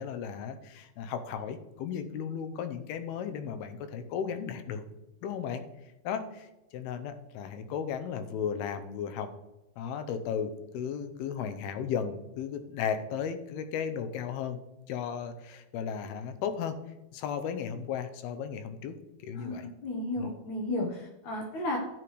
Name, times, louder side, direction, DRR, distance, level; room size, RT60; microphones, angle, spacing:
voice 1, 0.0-4.8 5.2-5.6 6.0-6.5 6.7-9.3 9.8-14.6 14.9-16.8 17.1-19.0 19.2-19.7 20.2-20.3, left 7 dB, 80° left, 9 dB, 2.7 m, -35 dB
voice 2, 19.3-21.8, left 1 dB, 65° left, 1 dB, 2.2 m, -33 dB
13.5 x 9.0 x 3.2 m, 1.0 s
omnidirectional pair, 4.5 m